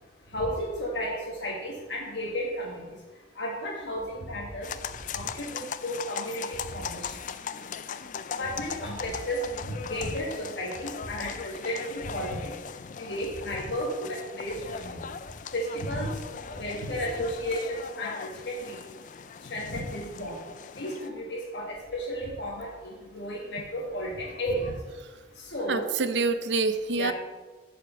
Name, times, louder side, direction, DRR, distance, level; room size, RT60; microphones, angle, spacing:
voice 1, 0.3-2.8 3.3-4.7 5.1-7.1 8.4-12.5 13.0-15.0 15.5-16.1 16.5-18.8 19.5-20.4 20.8-24.7 25.5-25.9 27.0-27.1, equal, 70° left, -3 dB, 1.6 m, -33 dB
sound 1, 4.6-21.1, left 6 dB, 45° left, 0.4 m, -39 dB
voice 2, 25.7-27.1, right 4 dB, 70° right, 10 dB, 0.7 m, -26 dB
9.0 x 5.2 x 6.8 m, 1.2 s
head